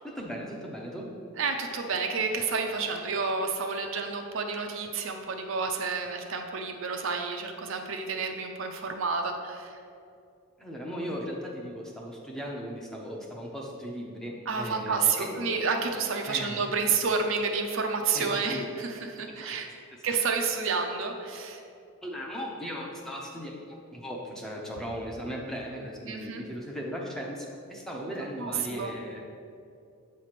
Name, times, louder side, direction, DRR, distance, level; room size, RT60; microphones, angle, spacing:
voice 1, 0.0-1.1 10.6-15.4 16.3-16.6 18.1-18.7 19.3-19.5 20.0-20.1 22.0-29.2, equal, ahead, -2 dB, 0.6 m, -37 dB
voice 2, 1.4-9.8 14.5-19.7 20.0-21.6 26.0-26.5 28.4-28.9, right 5 dB, 60° right, 4 dB, 0.6 m, -30 dB
7.6 x 3.2 x 5.8 m, 2.5 s
head